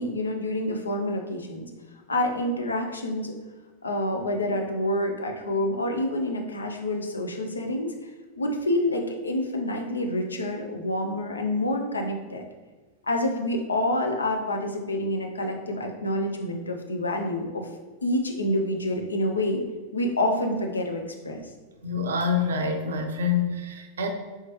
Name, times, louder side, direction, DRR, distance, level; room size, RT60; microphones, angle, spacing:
voice 1, 0.0-1.7 2.1-3.3 3.8-7.9 8.4-12.4 13.1-17.7 18.0-19.6 19.9-21.4, left 1 dB, 75° left, 3 dB, 0.4 m, -27 dB
voice 2, 21.8-24.1, left 4 dB, 65° right, 5 dB, 0.4 m, -26 dB
3.4 x 2.8 x 3.0 m, 1.3 s
figure-of-eight pair, 90°, 0 cm